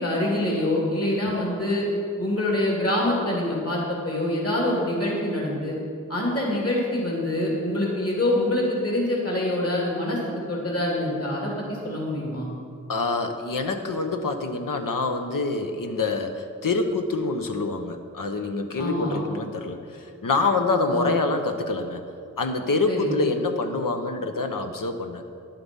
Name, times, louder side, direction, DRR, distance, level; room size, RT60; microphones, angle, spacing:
voice 1, 0.0-1.9 2.2-5.7 6.1-12.5 18.8-19.2 20.9-21.1 22.9-23.2, left 1 dB, 45° left, -3 dB, 2.9 m, -25 dB
voice 2, 12.9-22.1 22.4-25.2, left 3 dB, 85° left, 5 dB, 0.9 m, -26 dB
10.5 x 7.7 x 5.4 m, 2.4 s
wide cardioid pair, 50°, 32 cm